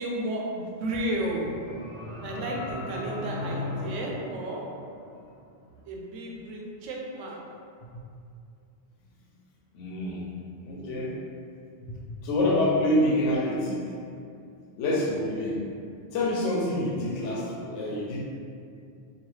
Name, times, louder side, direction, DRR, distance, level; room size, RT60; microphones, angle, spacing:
voice 1, 0.0-1.5 2.2-4.6 5.9-7.4, right 1 dB, 85° right, -2 dB, 0.9 m, -32 dB
sound 1, 1.2-5.3, left 2 dB, 15° right, 0.7 m, -37 dB
voice 2, 9.7-10.4 10.6-11.2 11.9-13.9 14.8-15.6 16.1-18.2, left 1 dB, 85° left, -3 dB, 0.9 m, -27 dB
2.9 x 2.3 x 3.1 m, 2.4 s
omnidirectional pair, 1.2 m